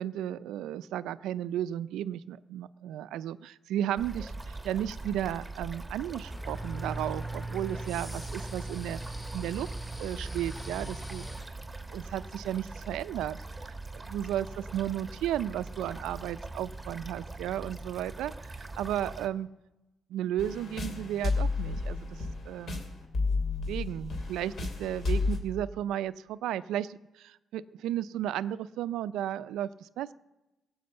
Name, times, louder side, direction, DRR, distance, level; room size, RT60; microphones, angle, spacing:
voice 1, 0.0-9.0 9.3-9.7 10.0-11.3 11.9-13.4 13.9-18.3 18.6-19.5 20.1-22.2 22.5-22.8 23.7-24.5 24.8-30.1, right 11 dB, 85° right, 16 dB, 0.4 m, -34 dB
sound 1, 4.0-19.3, right 2 dB, 10° right, 1.3 m, -42 dB
sound 2, 6.3-11.4, right 2 dB, 5° left, 1.9 m, -39 dB
sound 3, 20.4-25.4, left 3 dB, 55° left, 2.8 m, -31 dB
16.5 x 7.8 x 7.7 m, 1.0 s
cardioid pair, 90°, 0 cm